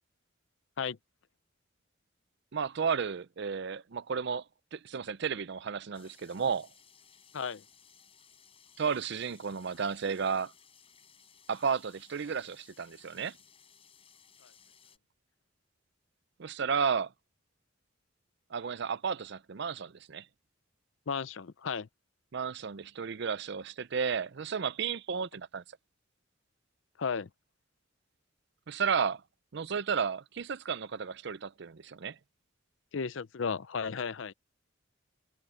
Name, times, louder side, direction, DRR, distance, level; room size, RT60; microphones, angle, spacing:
voice 1, 2.5-4.4 4.7-6.7 8.8-10.5 11.5-13.4 16.4-17.1 18.5-20.2 22.3-25.6 28.7-29.2 29.5-32.2, right 6 dB, 60° right, 0.5 m, -33 dB
sound 1, 5.9-15.0, left 7 dB, 30° left, 5.1 m, -60 dB
voice 2, 7.3-7.6 21.1-21.9 27.0-27.3 32.9-34.3, left 6 dB, 70° left, 0.6 m, -34 dB
head